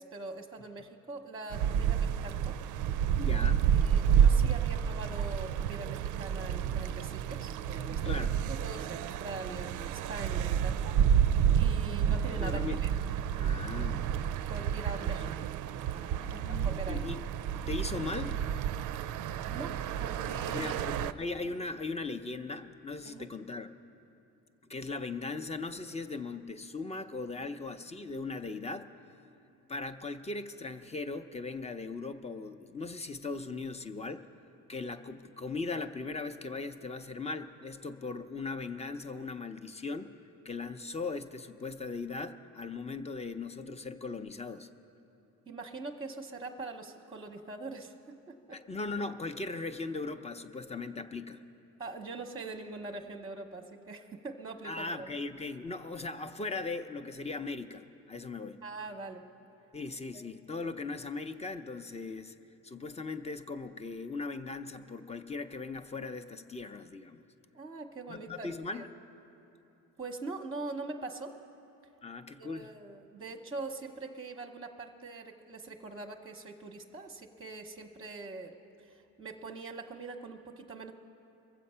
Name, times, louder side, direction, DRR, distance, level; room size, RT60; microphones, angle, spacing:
voice 1, 0.0-2.6 3.3-3.5 3.7-8.2 8.5-11.3 11.6-12.9 14.5-15.3 15.9-17.1 19.5-20.8 23.1-23.3 45.5-48.6 51.8-55.1 58.6-59.2 67.5-68.9 70.0-71.3 72.4-78.5 78.8-80.9, right 3 dB, 15° right, 3 dB, 0.8 m, -43 dB
sound 1, 1.5-21.1, right 9 dB, 65° right, 0.4 m, -29 dB
voice 2, 3.2-3.6 8.0-8.3 12.3-12.8 13.4-14.1 16.2-17.2 17.5-18.4 20.4-23.7 24.7-28.9 29.7-34.3 34.7-40.1 40.4-44.7 48.5-51.4 54.6-58.6 59.7-62.3 62.6-67.2 68.1-68.9 72.0-72.7, left 3 dB, 20° left, 9 dB, 0.6 m, -38 dB
22.5 x 7.7 x 5.6 m, 2.9 s
cardioid pair, 90°, 33 cm